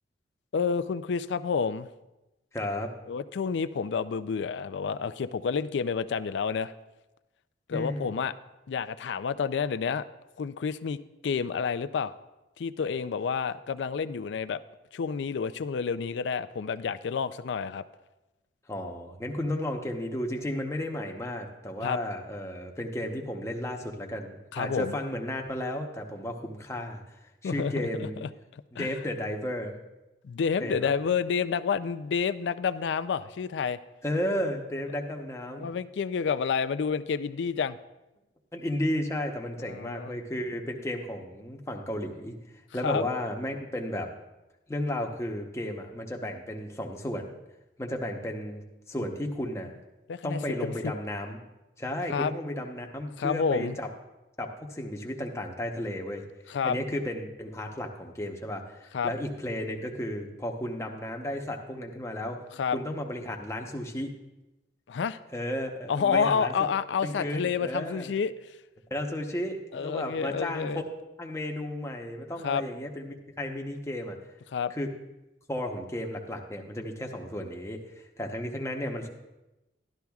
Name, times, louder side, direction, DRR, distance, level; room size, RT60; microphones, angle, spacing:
voice 1, 0.5-1.9 3.1-6.7 7.7-8.3 8.7-10.0 10.4-12.1 12.6-14.6 14.9-17.8 21.8-22.0 24.5-25.0 27.4-28.9 30.2-33.8 35.6-37.8 39.6-40.1 42.8-43.0 50.1-50.7 52.1-52.3 53.2-53.8 56.5-56.8 58.9-59.1 62.6-62.8 64.9-65.2 65.9-68.3 69.7-70.8 72.4-72.6 74.5-74.7, left 6 dB, 85° left, 13 dB, 0.4 m, -29 dB
voice 2, 2.5-2.9 7.7-8.1 18.7-27.0 27.4-28.2 28.7-29.8 30.6-30.9 34.0-35.7 38.5-42.3 42.7-44.1 44.7-47.3 47.8-49.7 50.2-51.4 51.8-53.9 54.4-56.2 56.6-62.4 62.7-64.1 65.3-66.5 67.0-68.1 68.9-70.8 71.2-74.2 74.7-74.9 75.5-79.1, left 1 dB, 15° left, 2 dB, 0.8 m, -33 dB
12.5 x 12.0 x 2.3 m, 1.0 s
head